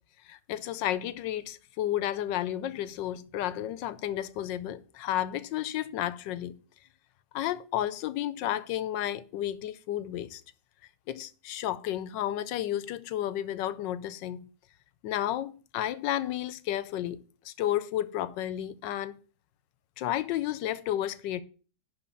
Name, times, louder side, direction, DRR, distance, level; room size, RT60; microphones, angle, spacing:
voice 1, 0.3-6.5 7.3-10.4 11.1-14.4 15.0-19.2 20.0-21.4, left 12 dB, 90° left, 1.3 m, -32 dB
11.0 x 3.9 x 6.9 m
omnidirectional pair, 1.9 m